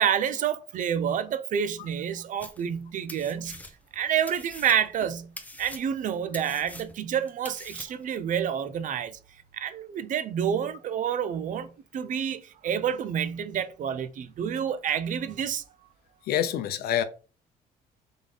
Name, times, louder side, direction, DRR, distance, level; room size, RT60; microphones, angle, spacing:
voice 1, 0.0-3.6 3.9-5.3 5.6-9.2 9.5-15.6, right 8 dB, 50° right, 0.5 m, -28 dB
sound 1, 2.4-2.8 3.1-4.0 4.3-8.2, left 2 dB, 10° left, 0.7 m, -44 dB
voice 2, 16.3-17.0, left 10 dB, 70° left, 0.6 m, -26 dB
3.5 x 3.5 x 3.8 m
cardioid pair, 110°, 17 cm